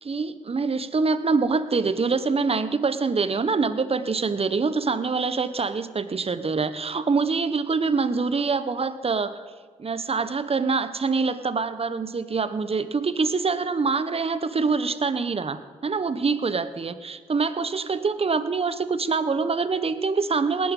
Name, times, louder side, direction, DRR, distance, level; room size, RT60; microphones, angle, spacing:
voice 1, 0.0-9.4 9.8-20.7, right 4 dB, 40° right, 12 dB, 1.2 m, -25 dB
18.5 x 11.5 x 5.5 m, 1.5 s
supercardioid pair, 45°, 15 cm